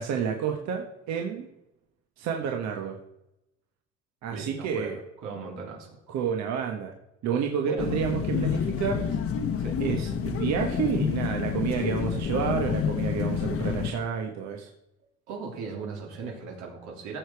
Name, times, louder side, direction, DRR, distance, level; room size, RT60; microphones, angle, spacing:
voice 1, 0.0-1.4 2.2-3.0 4.2-5.0 6.1-6.9 7.2-9.0 9.8-14.7, right 7 dB, 65° right, 3 dB, 1.3 m, -29 dB
voice 2, 4.3-6.0 7.7-8.0 9.6-9.8 15.3-17.2, right 5 dB, 85° right, 0 dB, 3.3 m, -38 dB
sound 1, 7.8-13.9, left 7 dB, 50° left, 1.0 m, -28 dB
15.0 x 6.9 x 4.7 m, 0.87 s
cardioid pair, 140°, 29 cm